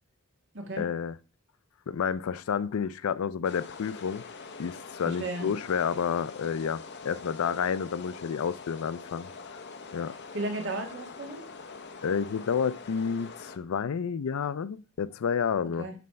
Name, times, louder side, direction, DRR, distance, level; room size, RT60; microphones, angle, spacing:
voice 1, 0.8-1.1 1.9-4.2 4.6-9.6 9.9-10.2 12.0-15.9, left 6 dB, 70° left, 0.4 m, -30 dB
sound 1, 3.4-13.6, left 4 dB, 50° left, 0.8 m, -44 dB
voice 2, 5.0-5.5 10.3-11.4 15.6-15.9, right 2 dB, 55° right, 1.6 m, -34 dB
9.3 x 3.2 x 5.6 m
head